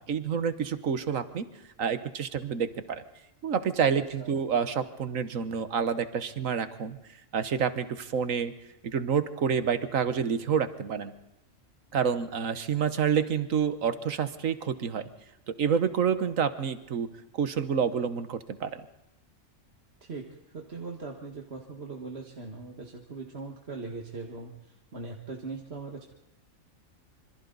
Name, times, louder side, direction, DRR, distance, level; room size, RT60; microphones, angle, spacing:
voice 1, 0.0-1.5 1.8-3.0 3.4-7.0 7.3-8.5 8.8-11.1 11.9-15.0 15.5-17.1 17.4-18.7, right 7 dB, 80° right, 11 dB, 1.6 m, -28 dB
voice 2, 3.9-4.3 20.0-26.1, right 3 dB, 55° right, 1 dB, 2.0 m, -40 dB
26.5 x 26.0 x 4.0 m, 0.95 s
omnidirectional pair, 1.4 m